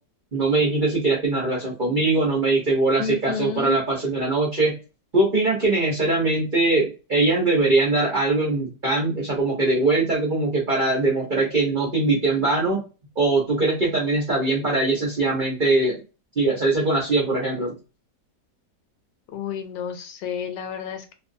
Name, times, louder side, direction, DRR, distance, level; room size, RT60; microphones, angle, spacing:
voice 1, 0.3-4.8 5.1-12.8 13.2-16.0 16.4-17.8, right 2 dB, 40° right, -4 dB, 0.7 m, -21 dB
voice 2, 3.0-3.8 19.3-21.1, left 7 dB, 75° left, 6 dB, 1.1 m, -31 dB
2.6 x 2.4 x 2.5 m, 0.30 s
omnidirectional pair, 1.9 m